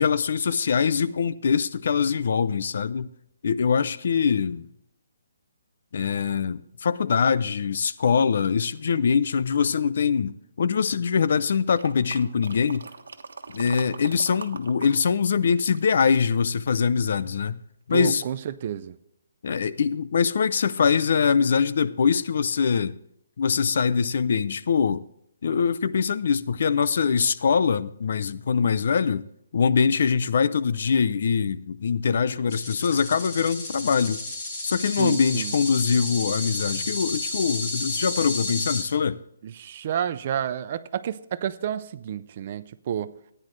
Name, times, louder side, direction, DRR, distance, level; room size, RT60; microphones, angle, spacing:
voice 1, 0.0-3.1 3.4-4.7 5.9-12.9 13.5-17.6 17.9-18.2 19.4-22.9 23.4-25.0 25.4-29.3 29.5-34.2 34.6-39.2, left 6 dB, 45° left, 0.4 m, -23 dB
sound 1, 11.7-14.9 15.2-16.7 17.2-17.3, right 4 dB, 80° right, 1.3 m, -41 dB
voice 2, 17.9-19.0 34.8-35.6 39.4-43.1, right 9 dB, 30° right, 0.4 m, -30 dB
sound 2, 32.5-38.8, left 2 dB, 25° left, 2.2 m, -32 dB
14.5 x 9.9 x 3.2 m
hypercardioid pair, 175°, 0 cm